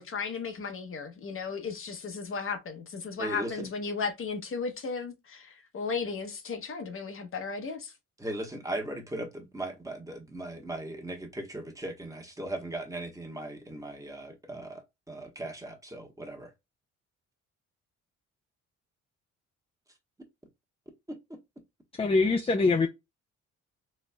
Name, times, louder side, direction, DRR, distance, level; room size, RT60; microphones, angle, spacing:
voice 1, 0.0-7.9, left 5 dB, 45° left, 0.9 m, -35 dB
voice 2, 3.2-3.7 8.2-16.5 21.1-21.2, right 1 dB, 10° right, 1.2 m, -38 dB
voice 3, 22.0-22.9, left 3 dB, 20° left, 0.5 m, -23 dB
4.2 x 3.1 x 2.2 m
cardioid pair, 90°, 30 cm